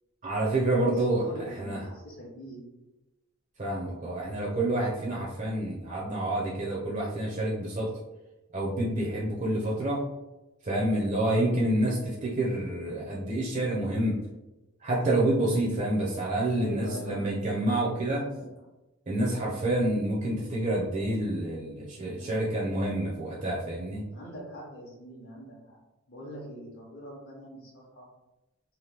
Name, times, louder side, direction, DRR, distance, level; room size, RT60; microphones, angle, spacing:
voice 1, 0.2-1.2 1.6-1.8 3.6-7.9 8.5-10.0 10.6-14.2 14.8-18.2 19.1-24.0, right 1 dB, 35° right, -5 dB, 0.5 m, -28 dB
voice 2, 0.9-2.7 16.5-17.5 18.2-18.4 22.1-22.7 24.1-25.8 26.1-28.1, equal, 45° left, -6 dB, 0.7 m, -43 dB
2.8 x 2.2 x 3.3 m, 1.0 s
head